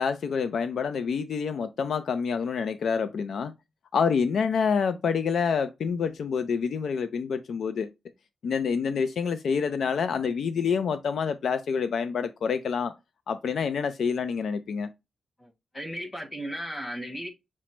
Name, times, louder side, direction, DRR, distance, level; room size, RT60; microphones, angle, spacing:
voice 1, 0.0-3.5 3.9-7.9 8.4-12.9 13.3-14.9, left 6 dB, 65° left, 0.3 m, -27 dB
voice 2, 15.4-17.3, equal, 20° left, 1.4 m, -36 dB
6.0 x 2.1 x 4.3 m
wide cardioid pair, 155°, 0 cm